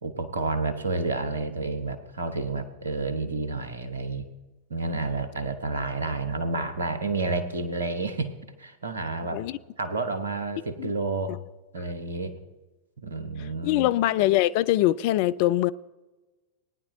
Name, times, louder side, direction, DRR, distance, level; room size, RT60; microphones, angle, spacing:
voice 1, 0.0-4.3 4.7-8.3 8.6-9.4 9.8-11.4 11.7-12.4 13.0-13.9, right 3 dB, 70° right, 1.1 m, -30 dB
voice 2, 13.6-15.7, left 15 dB, 45° left, 0.4 m, -23 dB
19.5 x 9.8 x 2.7 m
figure-of-eight pair, 90°, 0 cm